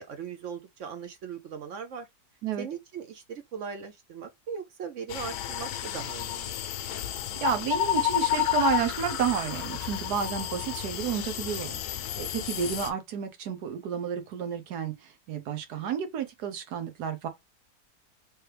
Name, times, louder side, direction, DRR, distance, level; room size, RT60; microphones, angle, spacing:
voice 1, 0.0-2.1 2.6-6.6, right 7 dB, 60° right, 0.9 m, -39 dB
sound 1, 5.1-12.9, left 12 dB, 75° left, 1.1 m, -31 dB
voice 2, 7.4-17.3, right 8 dB, 80° right, 1.4 m, -31 dB
3.4 x 3.1 x 3.2 m
omnidirectional pair, 1.7 m